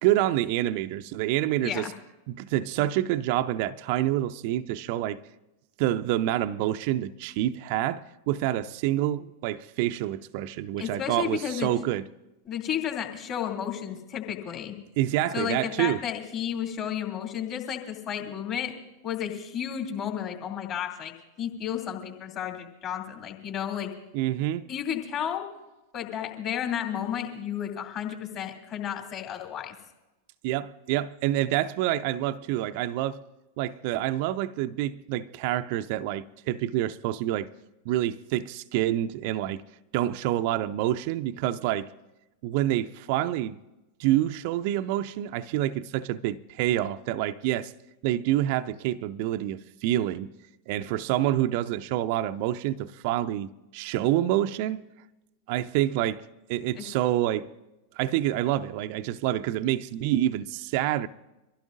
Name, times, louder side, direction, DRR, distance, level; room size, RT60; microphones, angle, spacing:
voice 1, 0.0-1.9 2.3-5.2 5.8-12.0 15.0-16.0 24.1-24.7 30.4-33.2 33.6-37.5 37.9-39.6 39.9-41.9 42.4-43.6 44.0-47.7 48.0-50.3 50.7-54.9 55.5-57.5 58.0-61.1, right 13 dB, 45° right, 0.5 m, -27 dB
voice 2, 10.8-11.7 12.5-14.7 15.3-18.7 19.0-23.9 24.7-25.5 25.9-29.7 56.8-56.9, left 9 dB, 35° left, 2.7 m, -32 dB
24.5 x 15.5 x 2.6 m
figure-of-eight pair, 90°, 0 cm